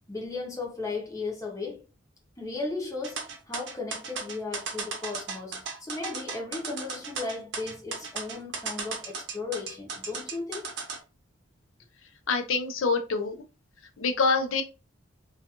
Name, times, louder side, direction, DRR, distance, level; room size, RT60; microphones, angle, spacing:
voice 1, 0.1-1.8 2.4-10.7, left 3 dB, 15° left, 0.7 m, -36 dB
sound 1, 3.0-11.0, right 5 dB, 60° right, 0.7 m, -35 dB
voice 2, 12.3-13.3 14.0-14.6, left 4 dB, 80° left, 0.5 m, -25 dB
2.4 x 2.3 x 2.8 m
head